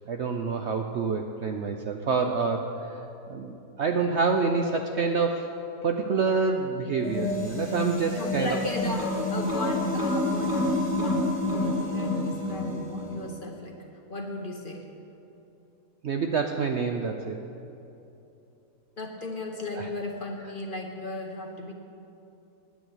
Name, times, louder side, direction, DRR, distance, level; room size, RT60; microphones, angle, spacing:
voice 1, 0.1-3.0 3.3-8.6 16.0-17.4 19.7-19.9, right 4 dB, 60° right, 4 dB, 0.7 m, -27 dB
sound 1, 7.0-13.3, left 1 dB, 5° left, 2.2 m, -28 dB
voice 2, 8.1-15.0 19.0-21.7, left 2 dB, 40° left, 2 dB, 1.0 m, -36 dB
10.5 x 9.4 x 7.9 m, 2.9 s
omnidirectional pair, 1.7 m